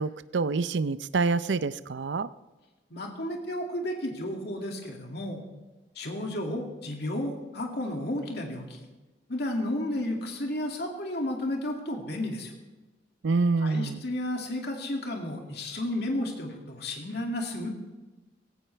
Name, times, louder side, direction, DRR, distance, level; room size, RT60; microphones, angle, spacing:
voice 1, 0.0-2.3 13.2-14.0, right 4 dB, 75° right, 15 dB, 0.5 m, -27 dB
voice 2, 2.9-5.4 6.0-8.9 9.3-12.5 13.6-17.7, left 1 dB, 60° left, 1 dB, 2.4 m, -32 dB
17.5 x 16.5 x 3.4 m, 1.2 s
head